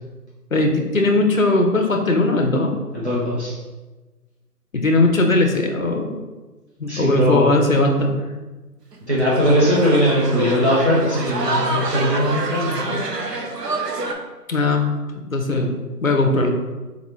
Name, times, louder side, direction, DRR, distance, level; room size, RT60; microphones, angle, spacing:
voice 1, 0.5-2.7 4.7-6.2 6.8-8.1 12.8-13.0 14.5-14.9 15.2-16.5, left 2 dB, 55° left, 4 dB, 0.7 m, -19 dB
voice 2, 2.9-3.5 6.9-7.5 9.1-12.8, equal, 45° right, -8 dB, 1.1 m, -19 dB
sound 1, 8.9-14.1, right 3 dB, 75° right, 0.8 m, -27 dB
4.0 x 4.0 x 3.1 m, 1.2 s
figure-of-eight pair, 170°, 48 cm